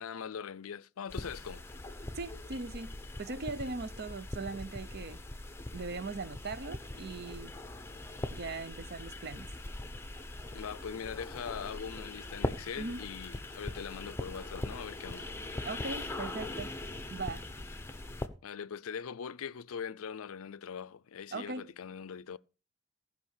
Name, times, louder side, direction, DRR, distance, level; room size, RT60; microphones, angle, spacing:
voice 1, 0.0-1.6 10.5-15.3 18.4-22.4, left 7 dB, 80° left, 0.5 m, -41 dB
sound 1, 1.1-18.3, left 2 dB, 10° left, 0.8 m, -41 dB
voice 2, 2.1-2.9 3.2-5.2 5.7-7.5 8.3-9.5 12.8-13.1 15.6-16.7 17.1-17.4 21.3-21.7, right 3 dB, 45° right, 0.7 m, -39 dB
16.0 x 5.4 x 6.5 m
head